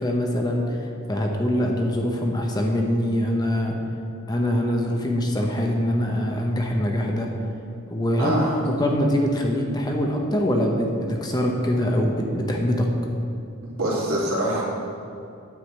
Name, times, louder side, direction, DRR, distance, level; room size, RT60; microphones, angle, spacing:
voice 1, 0.0-3.7 4.3-7.3 7.9-12.9, equal, 20° left, 1 dB, 0.8 m, -23 dB
voice 2, 8.2-8.6 13.6-14.6, right 1 dB, 75° right, -5 dB, 2.6 m, -25 dB
9.4 x 4.9 x 7.6 m, 2.6 s
head